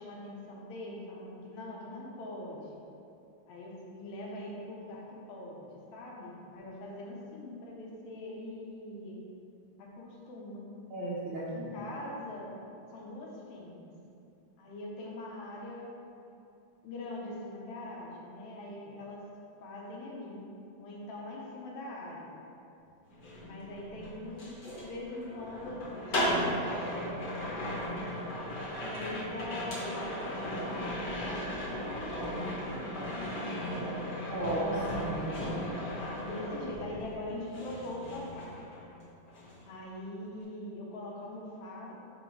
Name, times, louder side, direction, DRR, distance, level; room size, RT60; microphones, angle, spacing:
voice 1, 0.0-2.8 3.5-9.2 9.8-10.6 11.4-12.5 12.9-13.9 14.6-16.1 16.8-19.2 19.6-20.4 20.8-22.3 23.4-28.0 28.8-33.7 36.2-38.6 39.6-41.9, left 1 dB, 70° left, -3 dB, 2.1 m, -42 dB
voice 2, 10.9-11.7 34.3-35.5, right 1 dB, 85° right, -6 dB, 1.1 m, -34 dB
sound 1, 23.1-37.2 37.5-39.0 39.3-39.6, equal, 50° left, 1.3 m, -36 dB
6.0 x 4.4 x 4.6 m, 2.8 s
omnidirectional pair, 3.6 m